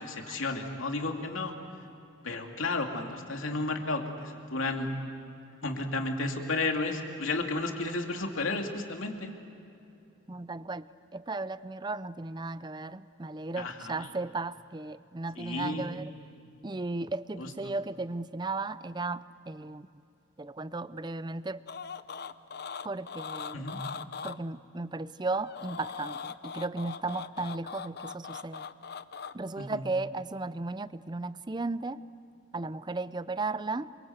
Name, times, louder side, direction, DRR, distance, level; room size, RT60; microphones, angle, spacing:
voice 1, 0.3-1.5 2.2-4.9 5.6-9.3 13.6-14.1 15.4-15.9 17.4-17.7 23.5-23.8 29.6-29.8, left 2 dB, 90° left, 3 dB, 2.7 m, -32 dB
voice 2, 10.3-10.8 11.1-16.1 16.6-19.9 20.4-21.6 22.8-23.6 24.2-28.7 29.3-32.0 32.5-33.9, right 3 dB, 20° right, 15 dB, 0.5 m, -35 dB
sound 1, 21.7-24.4 25.3-29.3, left 6 dB, 55° left, 0.7 m, -40 dB
27.5 x 23.5 x 8.0 m, 2.7 s
head